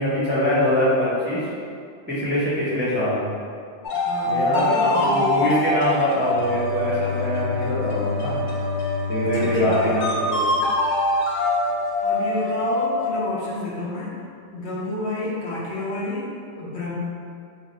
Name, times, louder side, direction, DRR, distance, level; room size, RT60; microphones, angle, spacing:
voice 1, 0.0-1.4 2.1-3.2 4.2-8.4 9.1-10.4, left 1 dB, 15° right, -10 dB, 0.5 m, -23 dB
sound 1, 3.8-13.3, left 1 dB, 60° left, 0.5 m, -24 dB
voice 2, 3.9-5.4 9.2-10.1 12.0-14.2 14.5-17.0, left 2 dB, 75° left, -5 dB, 1.0 m, -30 dB
Bowed string instrument, 6.1-11.3, left 5 dB, 20° left, 0.9 m, -30 dB
2.6 x 2.5 x 4.0 m, 2.3 s
omnidirectional pair, 1.2 m